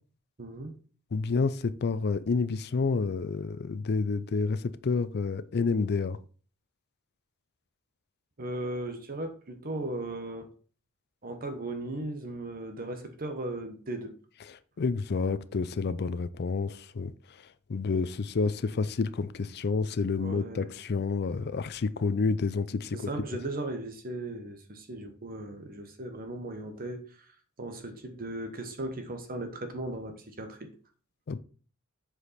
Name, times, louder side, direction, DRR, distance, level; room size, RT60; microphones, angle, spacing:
voice 1, 0.4-0.7 8.4-10.5 11.2-14.1 20.2-20.7 22.9-27.3 27.6-30.7, right 2 dB, 40° right, 1.1 m, -37 dB
voice 2, 1.1-6.2 14.5-17.1 17.7-23.0 31.3-31.4, left 4 dB, 50° left, 0.5 m, -29 dB
8.1 x 5.0 x 4.1 m
head